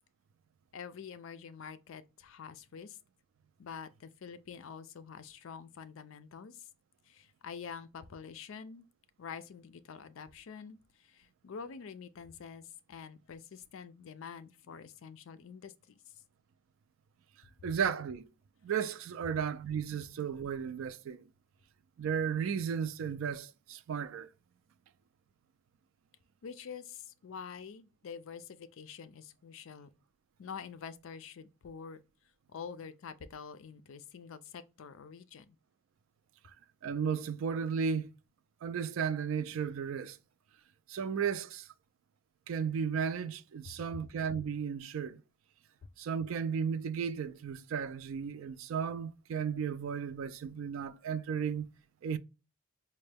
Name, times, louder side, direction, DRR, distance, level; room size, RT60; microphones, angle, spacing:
voice 1, 0.7-3.0 3.6-6.6 7.1-8.9 9.2-10.8 11.0-15.7 26.4-29.9 30.4-32.0 32.5-35.5 43.7-43.8, left 6 dB, 70° left, 0.4 m, -46 dB
voice 2, 17.6-18.3 18.6-21.3 22.0-24.3 36.8-38.1 38.6-40.2 40.9-41.7 42.5-45.2 46.0-51.7 52.0-52.2, right 7 dB, 70° right, 0.3 m, -34 dB
4.3 x 2.1 x 3.3 m
head